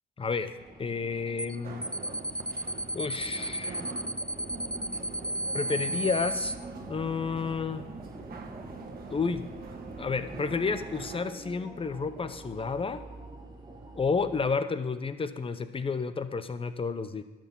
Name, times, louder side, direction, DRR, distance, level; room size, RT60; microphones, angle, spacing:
voice 1, 0.2-1.9 2.9-3.8 5.5-6.6 6.9-7.8 9.1-9.4 10.0-13.0 13.9-17.2, left 5 dB, 25° left, 11 dB, 0.8 m, -31 dB
sound 1, 0.5-14.5, right 2 dB, 20° right, 2.2 m, -47 dB
sound 2, 1.4-1.6 1.8-6.6, right 1 dB, 5° left, 0.4 m, -32 dB
sound 3, 1.6-11.2, right 4 dB, 50° right, 1.4 m, -44 dB
11.5 x 6.1 x 7.1 m, 1.1 s
cardioid pair, 90°, 20 cm